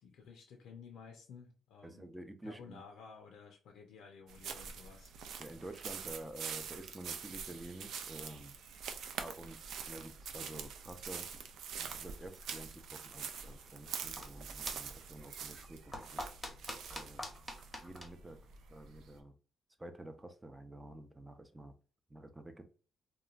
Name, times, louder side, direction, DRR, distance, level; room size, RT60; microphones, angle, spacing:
voice 1, 0.0-2.1 2.4-5.1, left 5 dB, 80° left, 3 dB, 0.5 m, -54 dB
voice 2, 1.8-2.8 5.4-8.5 9.2-11.3 11.8-16.2 16.9-17.2 17.8-18.4 18.7-19.3 19.8-21.7 22.1-22.6, right 1 dB, 10° right, 7 dB, 0.5 m, -49 dB
sound 1, 4.3-19.2, right 6 dB, 75° right, 0.4 m, -45 dB
sound 2, 13.8-19.2, left 1 dB, 10° left, 0.8 m, -48 dB
2.9 x 2.2 x 2.4 m, 0.39 s
cardioid pair, 90°, 0 cm